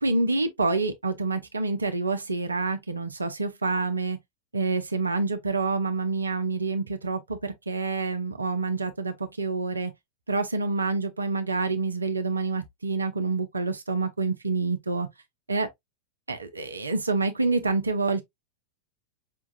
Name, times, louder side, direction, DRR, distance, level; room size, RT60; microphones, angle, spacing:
voice 1, 0.0-4.2 4.5-9.9 10.3-15.1 15.5-15.7 16.3-18.2, right 3 dB, 80° right, 0.5 m, -27 dB
5.2 x 2.3 x 2.5 m
figure-of-eight pair, 90°, 0 cm